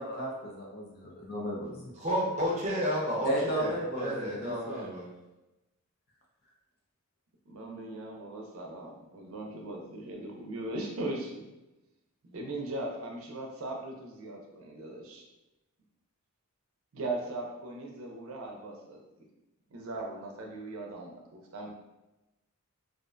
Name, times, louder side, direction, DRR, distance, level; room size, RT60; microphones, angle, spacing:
voice 1, 0.0-1.9 3.2-4.9, equal, 45° left, -2 dB, 0.5 m, -34 dB
voice 2, 2.0-5.1, equal, 35° right, -4 dB, 0.6 m, -31 dB
voice 3, 7.5-11.5 12.2-15.2 16.9-19.3 19.7-21.7, right 2 dB, 75° right, 0 dB, 0.5 m, -39 dB
2.4 x 2.1 x 2.4 m, 0.99 s
head